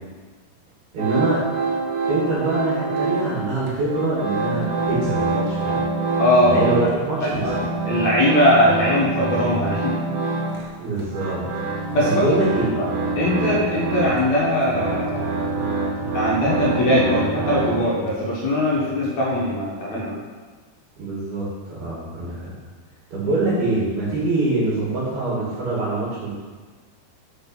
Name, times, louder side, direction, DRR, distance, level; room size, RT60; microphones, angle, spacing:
voice 1, 0.9-1.4 2.1-5.8 6.4-7.6 10.8-11.4 12.0-12.8 21.0-22.5 23.1-26.3, right 2 dB, 65° right, -7 dB, 4.2 m, -24 dB
sound 1, 1.0-3.4 3.7-7.0 7.3-18.2, right 3 dB, 80° right, 1.2 m, -26 dB
voice 2, 6.2-6.6 7.3-9.9 11.9-12.3 12.8-12.9 13.1-15.4 16.1-20.1, left 1 dB, 50° left, -5 dB, 2.4 m, -20 dB
7.9 x 6.8 x 6.1 m, 1.4 s
omnidirectional pair, 4.9 m